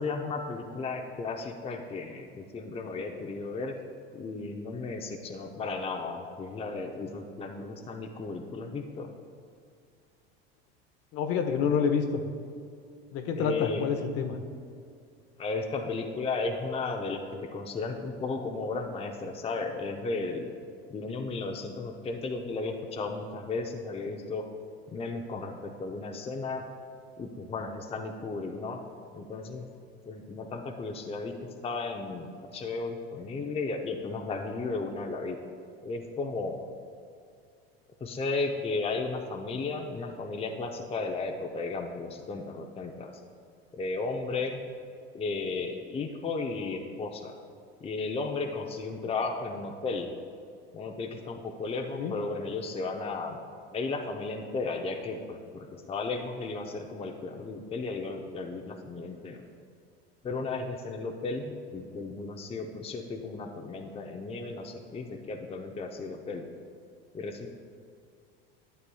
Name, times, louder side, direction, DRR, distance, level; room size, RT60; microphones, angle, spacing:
voice 1, 0.0-3.7 4.1-9.1 13.4-13.8 15.4-20.5 20.9-24.5 24.9-26.6 27.2-28.8 29.1-29.7 30.0-35.4 35.8-36.6 38.0-43.1 43.7-44.6 45.1-47.3 47.8-50.1 50.7-53.4 53.7-59.4 60.2-66.5 67.1-67.5, left 3 dB, 20° left, 3 dB, 0.6 m, -34 dB
voice 2, 11.1-12.2 13.1-14.4 51.9-52.1, left 6 dB, 50° left, 6 dB, 0.8 m, -27 dB
11.5 x 8.0 x 2.3 m, 2.3 s
hypercardioid pair, 85°, 31 cm